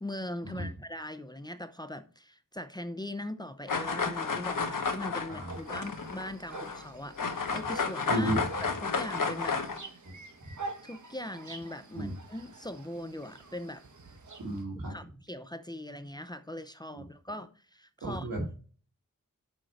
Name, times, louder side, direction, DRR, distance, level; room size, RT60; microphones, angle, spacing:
voice 1, 0.0-8.3 8.6-9.6 10.8-13.8 14.9-18.3, left 1 dB, 15° left, 0.6 m, -40 dB
sound 1, 3.7-6.9 7.2-9.8, left 4 dB, 75° left, 1.2 m, -32 dB
voice 2, 5.3-5.8 8.1-8.4 10.0-10.1 12.0-12.2 14.4-14.9 16.9-17.0 18.0-18.4, equal, 85° right, 1.7 m, -33 dB
sound 2, 5.5-14.6, right 3 dB, 60° right, 1.3 m, -47 dB
6.4 x 4.4 x 6.4 m
wide cardioid pair, 80°, 33 cm